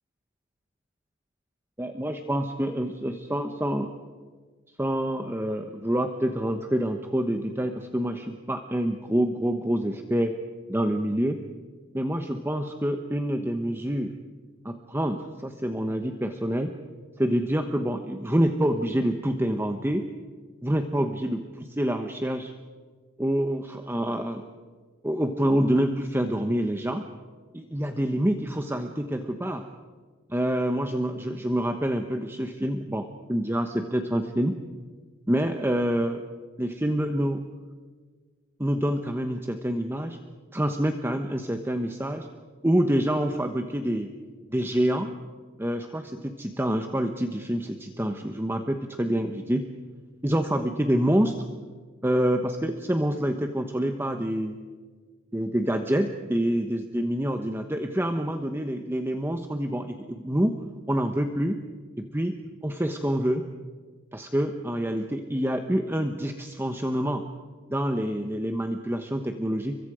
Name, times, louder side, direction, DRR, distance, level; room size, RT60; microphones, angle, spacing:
voice 1, 1.8-3.9 4.8-10.3 10.7-11.4 11.9-14.1 14.6-16.7 17.2-20.1 20.6-22.5 23.2-24.4 25.0-27.1 27.5-29.6 30.3-34.6 35.3-36.2 36.6-37.4 38.6-40.2 40.5-42.3 42.6-44.1 44.5-45.1 45.6-49.7 50.2-51.5 52.0-54.6 55.3-60.6 60.9-61.6 62.0-62.3 62.6-63.4 64.1-67.2 67.7-69.8, equal, 10° right, 6 dB, 1.1 m, -27 dB
29.5 x 24.0 x 5.0 m, 1.5 s
head